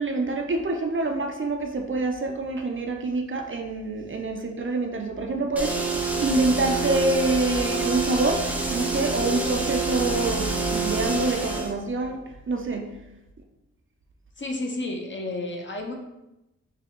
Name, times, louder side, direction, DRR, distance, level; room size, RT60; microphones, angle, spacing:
voice 1, 0.0-5.9 6.2-12.2 12.5-12.9, right 3 dB, 40° right, 3 dB, 0.5 m, -26 dB
sound 1, 5.5-11.7, right 3 dB, 5° right, 0.7 m, -27 dB
voice 2, 14.4-15.9, left 2 dB, 35° left, 2 dB, 0.7 m, -31 dB
4.6 x 2.2 x 3.7 m, 0.94 s
cardioid pair, 75°, 32 cm